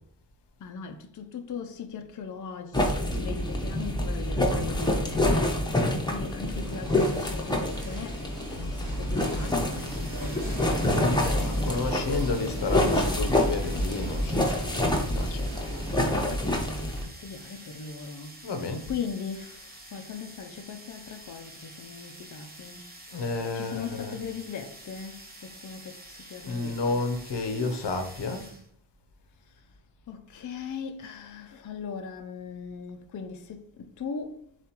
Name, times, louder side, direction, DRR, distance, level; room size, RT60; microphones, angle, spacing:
voice 1, 0.6-12.7 15.9-22.9 23.5-27.1 30.1-34.4, left 6 dB, 45° left, 0.5 m, -39 dB
sound 1, 2.7-17.0, left 1 dB, 10° left, 0.8 m, -27 dB
sound 2, 6.5-16.2, right 1 dB, 45° right, 1.8 m, -42 dB
sound 3, 9.7-28.7, right 1 dB, 20° right, 1.1 m, -48 dB
voice 2, 11.0-15.5 18.4-18.8 23.1-24.2 26.4-28.5, left 3 dB, 75° left, 0.8 m, -31 dB
7.1 x 2.5 x 2.9 m
wide cardioid pair, 115°, 42 cm